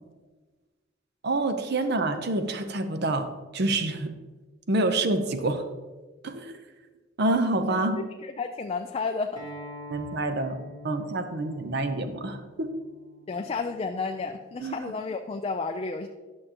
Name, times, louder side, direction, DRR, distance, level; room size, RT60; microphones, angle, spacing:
voice 1, 1.2-4.1 4.7-5.6 6.2-6.6 7.2-8.0 9.9-10.6 10.8-12.7 14.6-14.7, right 2 dB, 55° right, 8 dB, 0.7 m, -27 dB
voice 2, 8.2-9.5 13.3-16.1, left 4 dB, 30° left, 5 dB, 0.3 m, -31 dB
Acoustic guitar, 9.4-14.6, left 1 dB, 20° right, 1.9 m, -46 dB
11.0 x 6.4 x 2.9 m, 1.3 s
head